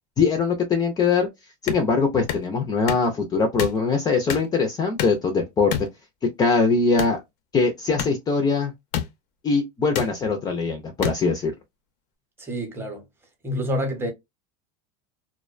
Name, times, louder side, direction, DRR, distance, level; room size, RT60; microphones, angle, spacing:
voice 1, 0.2-1.3 1.6-5.7 6.4-7.2 7.5-8.7 9.4-11.5, left 4 dB, 20° left, 0.4 m, -22 dB
sound 1, 1.7-1.8 2.3-2.4 2.9-3.1 3.6-3.8 4.3-4.5 5.0-5.2 5.7-5.9 7.0-7.2 8.0-8.1 8.9-9.1 9.9-10.1 11.0-11.2, left 9 dB, 90° left, 0.6 m, -27 dB
voice 2, 12.4-13.0 13.4-14.1, equal, 10° right, 0.7 m, -27 dB
2.4 x 2.1 x 2.4 m
supercardioid pair, 145°, 20 cm